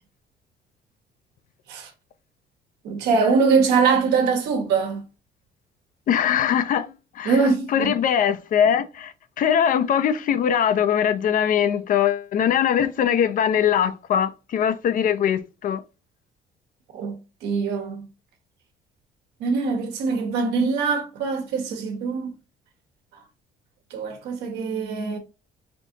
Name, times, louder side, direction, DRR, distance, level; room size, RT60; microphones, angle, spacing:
voice 1, 2.8-5.0 7.2-7.9 16.9-18.0 19.4-22.3 23.9-25.2, right 5 dB, 85° right, 1.3 m, -23 dB
voice 2, 6.1-7.4 7.7-15.8, left 9 dB, 55° left, 0.5 m, -21 dB
4.4 x 2.6 x 2.8 m
cardioid pair, 110°, 17 cm